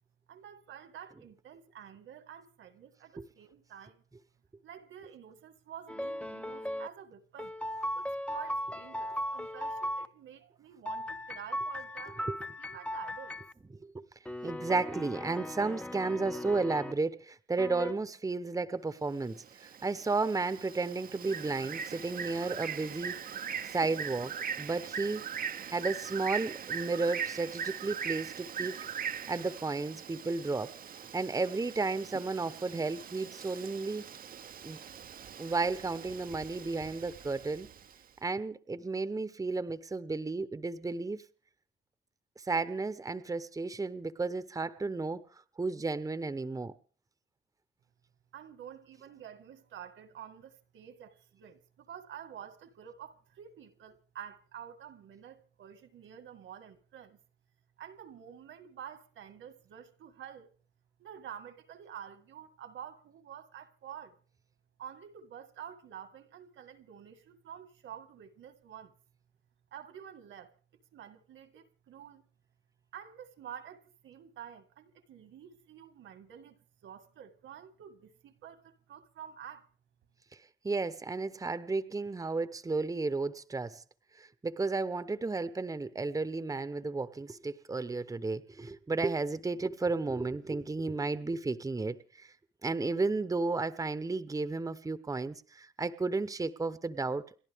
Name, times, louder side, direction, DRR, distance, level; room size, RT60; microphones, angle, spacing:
voice 1, 0.3-4.0 4.6-7.5 7.9-12.3 12.6-13.4 48.3-57.2 57.8-60.5 61.0-64.2 64.8-68.9 69.7-70.5 70.9-72.3 72.9-76.6 76.8-79.7, right 9 dB, 75° right, 1.9 m, -49 dB
sound 1, 5.9-6.9 7.4-10.1 10.9-13.5 14.3-16.9 17.6-17.9, equal, 5° left, 0.7 m, -37 dB
voice 2, 14.4-23.1 23.7-25.2 25.7-28.7 29.3-30.8 31.1-34.0 34.6-34.8 35.4-37.7 38.2-41.2 42.4-45.2 45.6-46.7 80.6-83.8 84.2-92.3 92.6-97.4, right 3 dB, 15° right, 0.9 m, -33 dB
Bird, 19.2-38.0, right 7 dB, 45° right, 0.8 m, -41 dB
30.0 x 11.5 x 3.6 m
cardioid pair, 90°, 20 cm